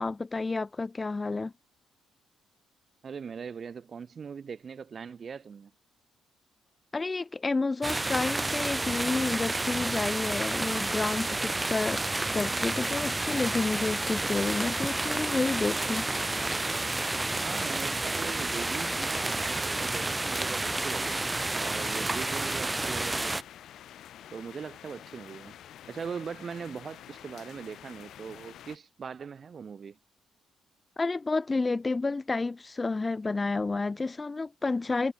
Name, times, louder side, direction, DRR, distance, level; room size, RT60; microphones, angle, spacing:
voice 1, 0.0-1.5 6.9-12.0 12.3-16.1 31.0-35.1, left 3 dB, 25° left, 1.3 m, -30 dB
voice 2, 3.0-5.7 17.3-23.4 24.3-25.6 25.9-30.0, right 6 dB, 45° right, 1.7 m, -40 dB
sound 1, 7.8-23.4, right 2 dB, 15° right, 0.8 m, -30 dB
sound 2, 10.6-28.8, left 11 dB, 70° left, 2.3 m, -49 dB
cardioid pair, 90°, 0 cm